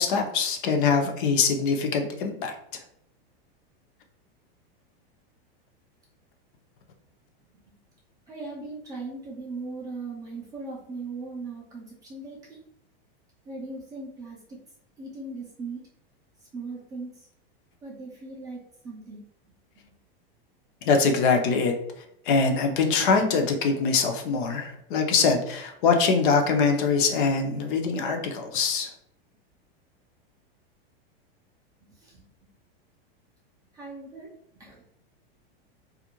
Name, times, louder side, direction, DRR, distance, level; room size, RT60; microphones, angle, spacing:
voice 1, 0.0-2.5 20.9-21.7 22.3-28.9, left 5 dB, 60° left, 3 dB, 0.6 m, -23 dB
voice 2, 8.3-12.6 13.5-14.6 15.0-15.9 16.5-17.3 17.8-19.2 31.9-32.2 33.7-34.3 34.5-34.8, right 3 dB, 10° right, -5 dB, 0.4 m, -39 dB
2.4 x 2.1 x 2.9 m, 0.74 s
supercardioid pair, 150°, 30 cm